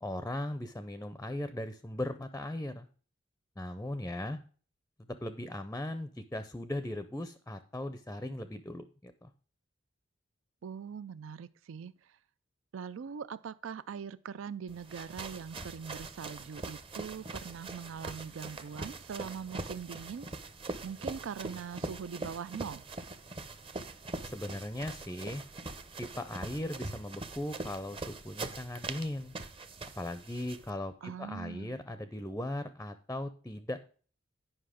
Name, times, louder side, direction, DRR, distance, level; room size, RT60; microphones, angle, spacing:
voice 1, 0.0-2.9 3.6-4.4 5.1-9.3 24.2-25.4 26.0-29.3 30.0-33.8, left 1 dB, 10° left, 0.5 m, -38 dB
voice 2, 10.6-12.2 12.7-20.5 20.8-22.9 31.0-31.8, right 7 dB, 75° right, 0.4 m, -42 dB
sound 1, 14.7-30.7, right 2 dB, 25° right, 0.7 m, -42 dB
9.8 x 5.5 x 5.0 m
head